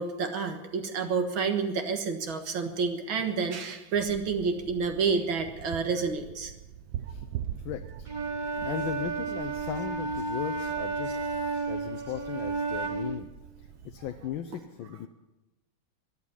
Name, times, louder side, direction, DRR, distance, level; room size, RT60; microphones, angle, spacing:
voice 1, 0.0-6.5, right 5 dB, 85° right, 5 dB, 2.3 m, -29 dB
sound 1, 4.0-14.4, right 10 dB, 65° right, 1.2 m, -43 dB
voice 2, 7.6-8.1 8.5-13.3 13.6-15.1, left 10 dB, 80° left, 8 dB, 1.5 m, -37 dB
Wind instrument woodwind instrument, 8.1-13.2, right 4 dB, 30° right, 1.1 m, -32 dB
13.5 x 11.0 x 9.8 m, 1.0 s
omnidirectional pair, 2.1 m